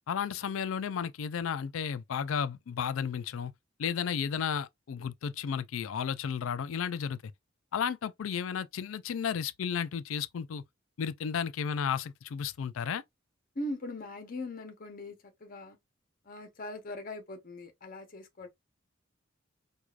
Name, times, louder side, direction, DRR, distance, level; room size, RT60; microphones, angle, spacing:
voice 1, 0.1-3.5 3.8-7.3 7.7-10.6 11.0-13.0, left 7 dB, 80° left, 0.4 m, -33 dB
voice 2, 13.5-15.8 16.3-18.5, left 1 dB, 45° left, 0.8 m, -40 dB
4.6 x 2.4 x 2.4 m
head